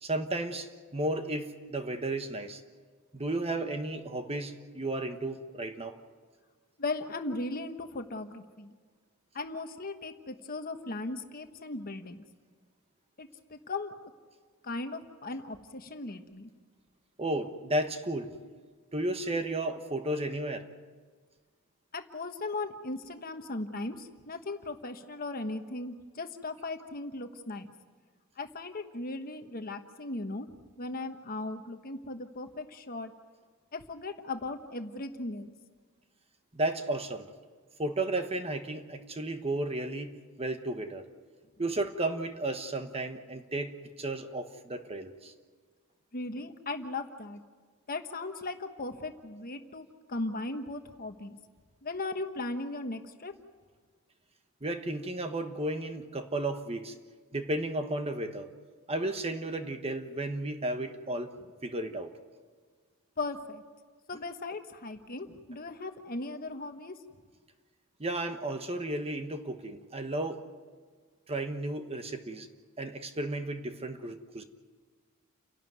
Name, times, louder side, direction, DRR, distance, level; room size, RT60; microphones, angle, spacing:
voice 1, 0.0-2.6 3.1-6.0 17.2-18.4 18.9-20.6 36.5-37.2 37.8-40.1 40.4-41.0 41.6-45.3 54.6-56.9 57.3-58.5 58.9-61.3 61.6-62.1 68.0-70.4 71.3-72.5 72.8-74.4, right 1 dB, 25° right, 7 dB, 1.2 m, -33 dB
voice 2, 6.8-8.7 9.3-12.2 13.2-14.1 14.6-16.5 21.9-27.7 28.4-30.5 30.8-33.1 33.7-35.5 46.1-47.4 47.9-51.4 51.8-53.3 63.2-63.6 64.1-66.9, left 2 dB, 40° left, 7 dB, 1.3 m, -37 dB
29.5 x 12.0 x 9.4 m, 1.5 s
head